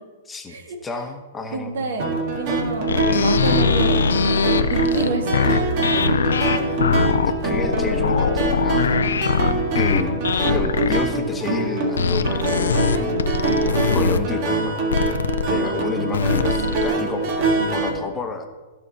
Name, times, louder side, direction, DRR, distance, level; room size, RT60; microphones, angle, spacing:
voice 1, 0.8-1.9 3.1-3.4 7.2-8.8 9.7-12.8 13.6-14.8 15.5-17.2 17.7-18.5, left 4 dB, 15° left, 4 dB, 1.1 m, -30 dB
voice 2, 1.5-4.2 4.7-5.5 6.6-6.8 13.1-13.3, right 3 dB, 75° right, 5 dB, 1.7 m, -29 dB
sound 1, 2.0-17.9, right 2 dB, 50° right, 1.7 m, -24 dB
sound 2, 2.9-11.0 12.0-14.2 14.9-15.4 16.1-16.9, left 5 dB, 90° left, 0.6 m, -21 dB
15.0 x 5.2 x 4.1 m, 1.2 s
hypercardioid pair, 130°, 0 cm